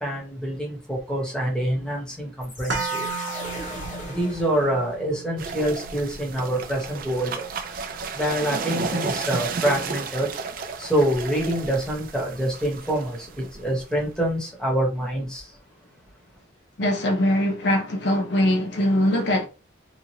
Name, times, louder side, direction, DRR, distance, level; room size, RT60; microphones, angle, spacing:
voice 1, 0.0-3.3 4.1-7.4 8.1-10.3 10.8-15.6, right 1 dB, 5° left, 1.0 m, -26 dB
sound 1, 2.4-5.2, left 1 dB, 40° left, 0.9 m, -38 dB
sound 2, 2.7-10.8 11.1-11.2, right 4 dB, 70° right, 0.7 m, -37 dB
sound 3, 5.4-14.3, right 4 dB, 45° right, 0.4 m, -33 dB
voice 2, 16.8-19.5, left 1 dB, 60° left, 0.5 m, -22 dB
2.9 x 2.4 x 2.8 m
head